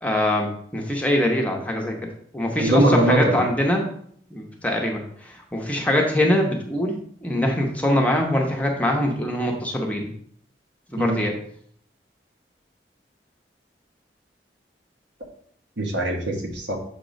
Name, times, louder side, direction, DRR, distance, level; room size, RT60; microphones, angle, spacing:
voice 1, 0.0-2.0 2.3-3.9 4.3-10.1 10.9-11.3, left 1 dB, 10° left, 0 dB, 0.8 m, -23 dB
voice 2, 2.6-3.5 11.0-11.2 15.8-16.8, right 1 dB, 85° right, 1 dB, 1.3 m, -21 dB
6.9 x 3.0 x 5.1 m, 0.64 s
head